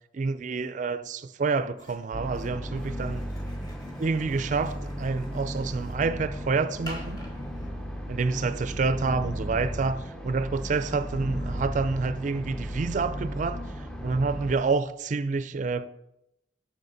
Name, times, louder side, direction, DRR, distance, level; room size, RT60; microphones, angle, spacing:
voice 1, 0.1-3.3 4.0-7.2 8.1-13.6 14.0-15.9, right 4 dB, 45° right, 0.4 m, -28 dB
sound 1, 1.8-8.1, right 1 dB, 20° left, 1.9 m, -49 dB
sound 2, 2.1-14.6, equal, 5° left, 0.6 m, -35 dB
6.7 x 6.2 x 5.1 m
head